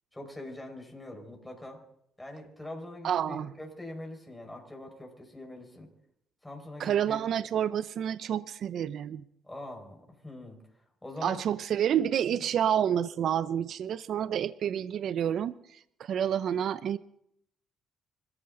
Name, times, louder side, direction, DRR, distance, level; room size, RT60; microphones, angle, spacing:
voice 1, 0.1-1.8 2.2-5.9 6.4-7.2 9.4-10.0 10.2-10.6 11.0-11.4, left 1 dB, 10° left, 1 dB, 5.1 m, -43 dB
voice 2, 3.0-3.5 6.8-9.2 11.2-17.0, right 9 dB, 60° right, 16 dB, 0.6 m, -29 dB
25.5 x 14.0 x 3.9 m, 0.74 s
cardioid pair, 85°, 0 cm